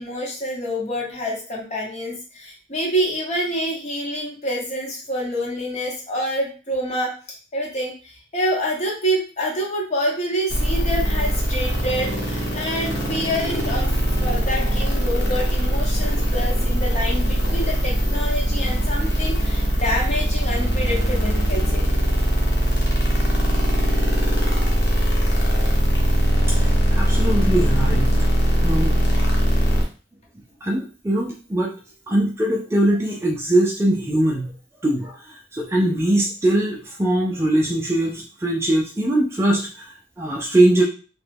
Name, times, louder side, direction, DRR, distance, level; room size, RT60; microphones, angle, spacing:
voice 1, 0.0-7.2 7.5-21.9, equal, 35° left, -1 dB, 0.9 m, -27 dB
sound 1, 10.5-29.8, equal, 60° left, 1.0 m, -20 dB
voice 2, 26.3-28.3 28.5-29.0 30.6-31.7 32.1-34.5 34.8-40.8, right 1 dB, 15° right, -1 dB, 0.4 m, -21 dB
3.0 x 2.2 x 3.4 m, 0.36 s
head